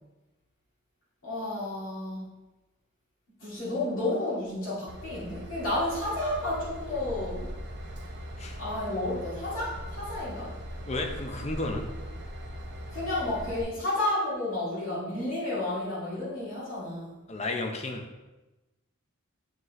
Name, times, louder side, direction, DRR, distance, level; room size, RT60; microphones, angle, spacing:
voice 1, 1.2-2.2 3.4-7.5 8.6-10.5 12.9-17.2, left 1 dB, 65° left, -9 dB, 2.4 m, -31 dB
Train / Engine, 4.9-13.6, equal, 55° right, 0.8 m, -40 dB
voice 2, 10.9-11.9 17.3-18.1, left 2 dB, 30° left, 4 dB, 0.7 m, -32 dB
7.7 x 5.2 x 3.2 m, 1.1 s
head